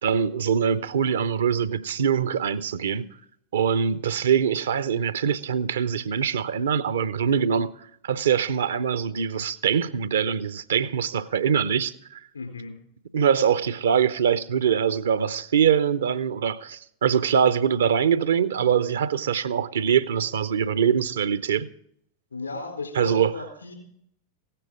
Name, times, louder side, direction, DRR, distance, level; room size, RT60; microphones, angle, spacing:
voice 1, 0.0-3.1 3.5-7.7 8.0-12.2 13.1-21.7 22.9-23.3, right 7 dB, 65° right, 0.6 m, -23 dB
voice 2, 12.3-12.7 22.3-23.8, left 3 dB, 80° left, 3.9 m, -35 dB
16.5 x 10.0 x 4.9 m
figure-of-eight pair, 90°, 0 cm